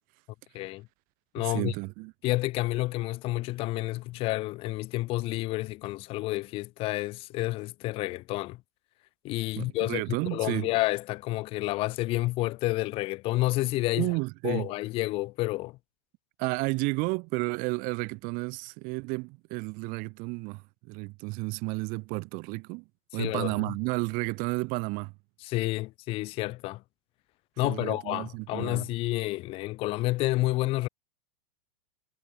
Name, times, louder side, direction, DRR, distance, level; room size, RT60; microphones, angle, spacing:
voice 1, 0.5-0.9 1.3-1.7 2.2-8.6 9.2-10.0 10.3-14.1 14.4-15.8 23.2-23.5 25.4-26.8 27.6-30.9, left 19 dB, 30° left, 0.3 m, -29 dB
voice 2, 1.4-2.1 9.6-10.7 14.0-14.7 16.4-22.8 23.1-25.1 27.6-28.9, right 28 dB, 45° right, 2.4 m, -32 dB
hypercardioid pair, 115°, 19 cm